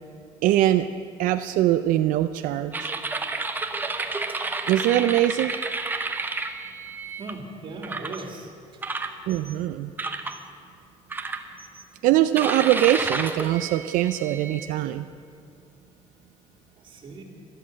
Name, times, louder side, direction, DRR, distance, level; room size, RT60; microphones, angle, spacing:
voice 1, 0.4-0.9 1.2-2.9 4.7-5.5 9.3-9.9 12.0-15.1, right 13 dB, 85° right, 10 dB, 0.5 m, -22 dB
sound 1, 2.7-7.3 7.8-8.2 8.8-9.5 10.0-10.4 11.1-11.8 12.4-14.7, right 3 dB, 15° right, 0.8 m, -31 dB
voice 2, 7.2-8.5 16.8-17.2, right 3 dB, 40° right, 2 dB, 2.2 m, -38 dB
13.0 x 12.5 x 7.6 m, 2.4 s
cardioid pair, 155°, 14 cm